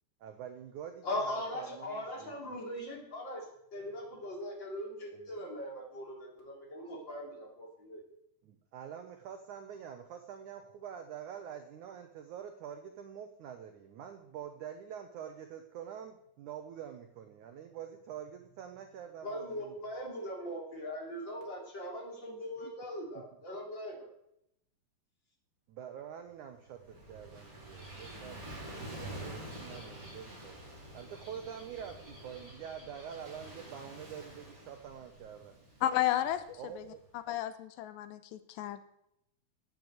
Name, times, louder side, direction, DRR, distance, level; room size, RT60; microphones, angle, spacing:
voice 1, 0.2-2.7 5.1-5.5 8.4-19.8 22.6-22.7 23.2-23.3 25.7-28.4 28.8-30.6 30.9-35.6 36.6-37.0, right 8 dB, 80° right, 7 dB, 1.8 m, -46 dB
voice 2, 1.0-3.4 3.7-8.0 19.2-24.1, left 1 dB, 30° left, -1 dB, 3.9 m, -40 dB
Gull seagull / Waves surf, 26.5-37.1, right 1 dB, 40° right, 6.9 m, -48 dB
voice 3, 35.8-36.9 37.1-38.8, left 12 dB, 90° left, 12 dB, 3.1 m, -33 dB
12.0 x 9.2 x 7.9 m, 0.77 s
omnidirectional pair, 4.9 m